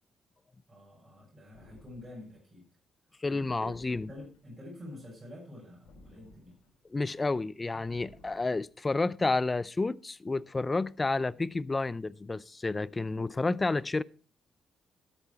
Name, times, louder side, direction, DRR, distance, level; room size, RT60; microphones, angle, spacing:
voice 1, 0.7-2.6 3.3-6.5, left 1 dB, 20° right, 6.3 m, -48 dB
sound 1, 1.5-2.4 3.7-4.6 5.8-6.9 7.9-8.7, left 2 dB, 75° left, 3.7 m, -57 dB
voice 2, 3.2-4.1 6.9-14.0, left 3 dB, 25° left, 0.5 m, -30 dB
13.0 x 8.5 x 4.6 m
cardioid pair, 90°, 0 cm